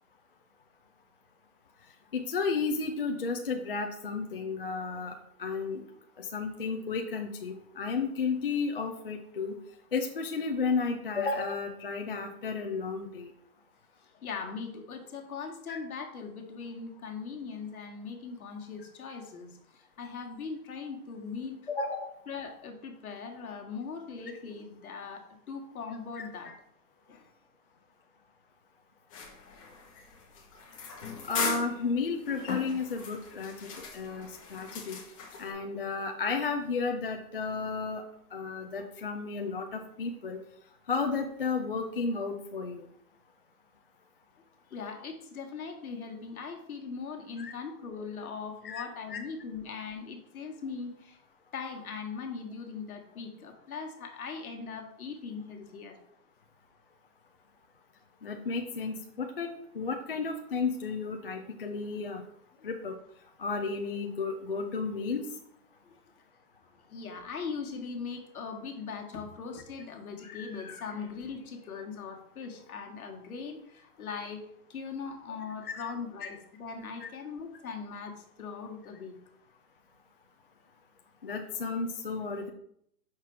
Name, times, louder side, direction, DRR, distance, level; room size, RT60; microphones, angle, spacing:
voice 1, 2.1-5.8 6.2-9.5 9.9-13.3 15.7-15.8 21.7-22.1 26.2-26.5 31.2-35.0 35.4-38.0 38.3-40.4 40.9-42.9 47.4-47.5 48.6-49.2 58.2-59.5 59.7-62.2 62.6-63.0 63.4-65.2 75.6-75.8 76.2-76.3 77.0-77.1 81.2-82.5, left 4 dB, 40° left, 3 dB, 0.4 m, -33 dB
voice 2, 14.2-21.6 22.3-26.5 27.0-27.3 44.7-51.2 51.5-56.0 65.8-66.0 66.9-74.4 74.7-79.1, left 5 dB, 65° left, 2 dB, 1.5 m, -40 dB
sound 1, 29.1-35.5, left 5 dB, 20° left, 0.9 m, -39 dB
5.9 x 4.4 x 4.6 m, 0.71 s
hypercardioid pair, 165°, 46 cm